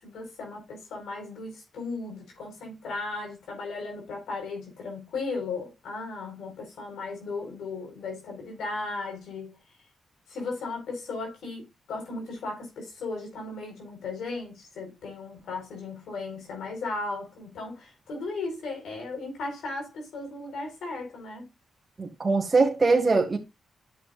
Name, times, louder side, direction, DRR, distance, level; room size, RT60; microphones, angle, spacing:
voice 1, 0.0-9.6 10.3-21.5, left 3 dB, 80° left, 4.3 m, -36 dB
voice 2, 22.0-23.4, right 3 dB, 35° right, 1.8 m, -22 dB
11.0 x 7.5 x 2.4 m
supercardioid pair, 55°, 0 cm